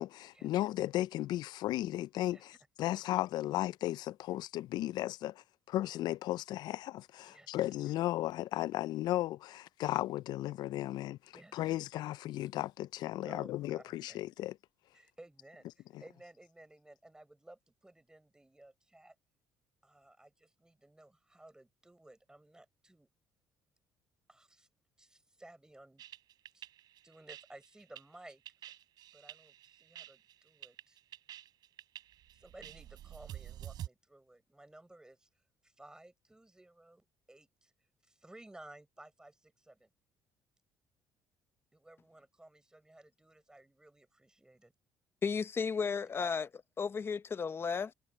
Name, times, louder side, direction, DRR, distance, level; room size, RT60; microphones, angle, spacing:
voice 1, 0.0-11.2 11.5-14.6 15.9-16.0, left 15 dB, 70° left, 0.4 m, -35 dB
voice 2, 7.3-7.6 11.3-11.8 13.2-14.2 14.9-19.2 19.8-23.1 24.3-24.7 25.0-26.0 26.5-26.7 27.0-28.8 29.1-31.0 32.3-35.3 35.6-37.7 38.0-39.9 41.7-44.7 46.2-46.3, right 1 dB, 10° right, 5.9 m, -56 dB
sound 1, 26.0-33.9, right 12 dB, 65° right, 3.4 m, -48 dB
voice 3, 45.2-46.5 46.8-47.9, left 5 dB, 30° left, 0.7 m, -33 dB
cardioid pair, 105°, 8 cm